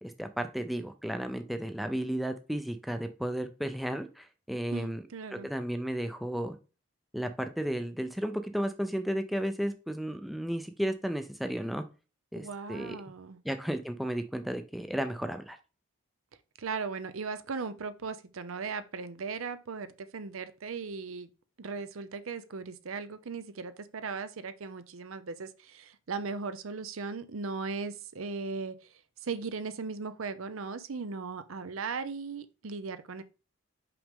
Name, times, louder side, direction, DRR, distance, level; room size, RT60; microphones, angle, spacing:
voice 1, 0.0-5.0 5.3-6.6 7.1-11.8 12.3-13.0 13.4-15.6, equal, ahead, 0.5 m, -33 dB
voice 2, 4.7-5.5 12.4-13.4 16.6-21.3 21.6-28.7 29.2-33.2, right 4 dB, 85° right, 0.6 m, -38 dB
5.8 x 5.2 x 3.6 m
head